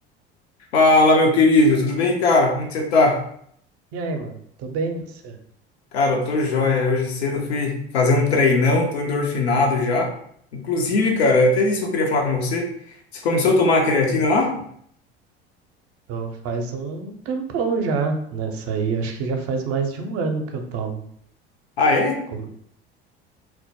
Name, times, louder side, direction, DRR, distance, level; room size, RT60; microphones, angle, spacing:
voice 1, 0.7-3.2 5.9-10.1 10.5-12.7 13.1-14.5 21.8-22.2, left 2 dB, 85° left, 2 dB, 0.6 m, -19 dB
voice 2, 3.9-5.4 16.1-21.0 22.3-22.5, right 4 dB, 50° right, 4 dB, 0.5 m, -27 dB
2.1 x 2.0 x 2.8 m, 0.66 s
hypercardioid pair, 70°, 31 cm